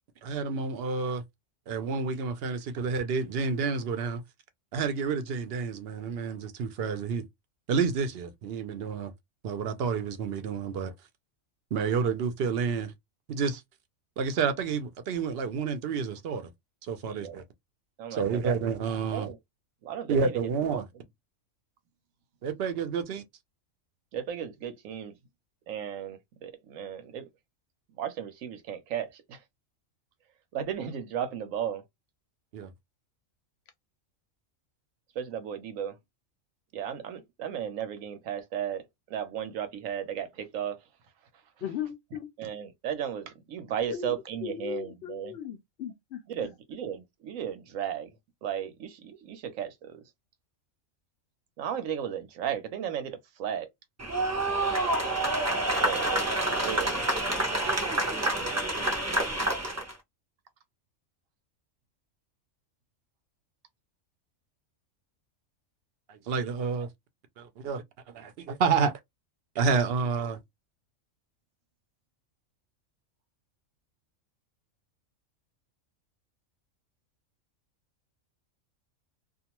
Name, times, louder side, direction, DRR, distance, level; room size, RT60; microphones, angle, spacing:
voice 1, 0.2-1.2 1.7-4.2 4.7-7.3 7.7-9.1 9.4-10.9 11.7-12.9 13.3-13.6 14.2-16.5 16.8-17.4 18.1-19.3 20.1-20.9 22.4-23.2 32.5-32.7 66.1-66.9 67.4-68.9 69.6-70.4, right 5 dB, 60° right, 0.7 m, -29 dB
voice 2, 17.1-17.4 18.0-18.6 19.1-19.4 19.8-20.8 24.1-25.1 25.7-27.3 28.0-29.4 30.5-31.8 35.2-36.0 36.7-40.8 42.4-45.3 46.3-48.1 48.4-50.0 51.6-53.7 55.8-56.1 56.4-56.9, right 9 dB, 80° right, 1.0 m, -35 dB
voice 3, 41.6-42.3 43.9-44.1 44.4-46.2, left 9 dB, 65° left, 0.7 m, -37 dB
sound 1, 54.0-59.9, right 1 dB, 20° right, 0.4 m, -28 dB
2.4 x 2.3 x 2.9 m
omnidirectional pair, 1.4 m